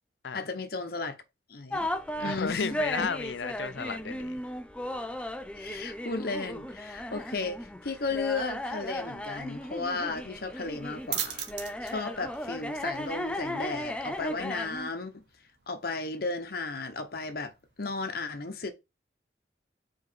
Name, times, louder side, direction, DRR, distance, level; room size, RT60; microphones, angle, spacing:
voice 1, 0.3-1.2 1.5-1.9 2.2-3.1 5.6-11.5 11.8-15.2 15.7-17.5 17.8-18.7, left 3 dB, 60° left, 1.0 m, -34 dB
sound 1, 1.7-14.9, equal, 5° left, 0.5 m, -36 dB
voice 2, 2.2-4.4, left 5 dB, 90° left, 0.6 m, -33 dB
sound 2, 10.5-17.8, right 9 dB, 80° right, 1.1 m, -43 dB
4.8 x 4.5 x 4.6 m
head